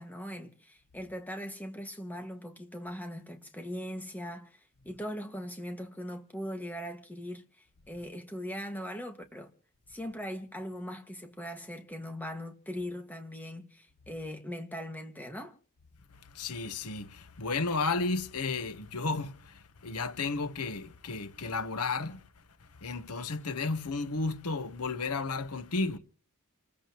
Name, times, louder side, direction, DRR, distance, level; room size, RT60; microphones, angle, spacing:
voice 1, 0.0-7.4 7.9-9.5 9.9-15.6, equal, 10° left, 1.8 m, -40 dB
voice 2, 16.3-22.2 22.8-26.0, left 3 dB, 90° left, 1.1 m, -33 dB
29.0 x 14.5 x 3.0 m
head